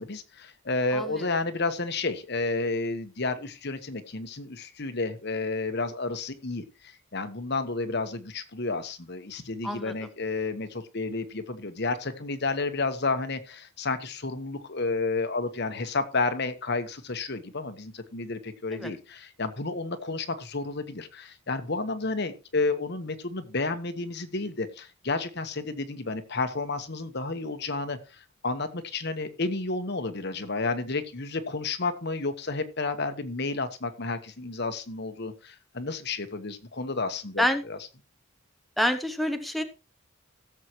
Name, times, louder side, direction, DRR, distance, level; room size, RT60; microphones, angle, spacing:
voice 1, 0.0-37.8, left 3 dB, 50° left, 9 dB, 1.2 m, -31 dB
voice 2, 0.9-1.3 9.6-9.9 18.7-18.9 37.4-37.6 38.8-39.6, left 1 dB, ahead, 5 dB, 0.7 m, -27 dB
17.0 x 7.4 x 3.1 m, 0.30 s
head